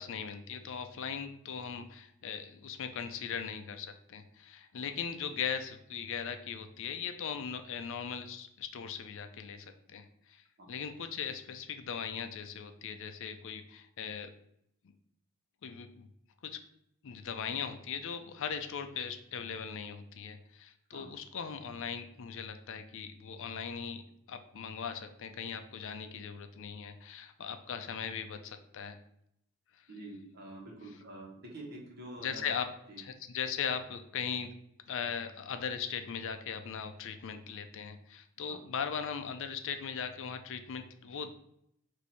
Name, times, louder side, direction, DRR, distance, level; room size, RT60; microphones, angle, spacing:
voice 1, 0.0-14.3 15.6-16.1 16.4-16.6 17.0-24.0 24.3-29.0 32.2-32.7 33.0-34.5 34.9-41.3, left 7 dB, 60° left, 8 dB, 0.4 m, -39 dB
voice 2, 29.9-32.5 32.9-33.0 38.5-38.6, right 1 dB, 45° right, -1 dB, 1.2 m, -47 dB
4.6 x 2.7 x 4.2 m, 0.74 s
head